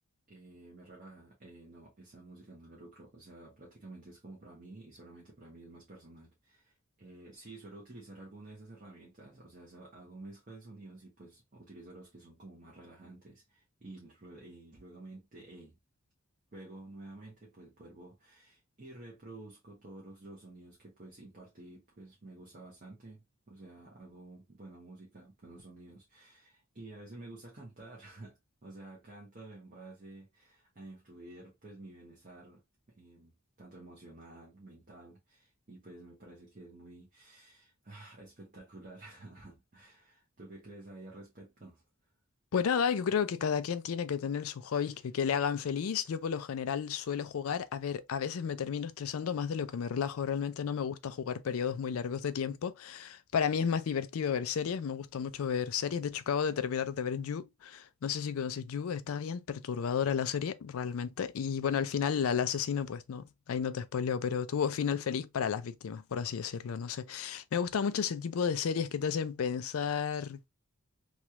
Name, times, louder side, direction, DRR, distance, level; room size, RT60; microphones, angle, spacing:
voice 1, 0.3-15.7 16.5-32.6 32.9-41.8 44.8-44.9, right 2 dB, 40° right, 0.8 m, -51 dB
voice 2, 42.5-70.5, left 7 dB, 75° left, 0.4 m, -32 dB
3.1 x 2.3 x 2.8 m
head